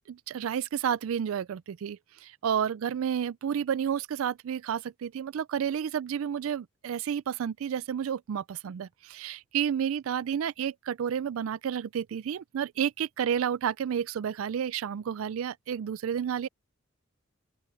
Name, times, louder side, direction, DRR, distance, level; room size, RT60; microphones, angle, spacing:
voice 1, 0.1-16.5, right 8 dB, 75° right, 0.4 m, -31 dB
open air
head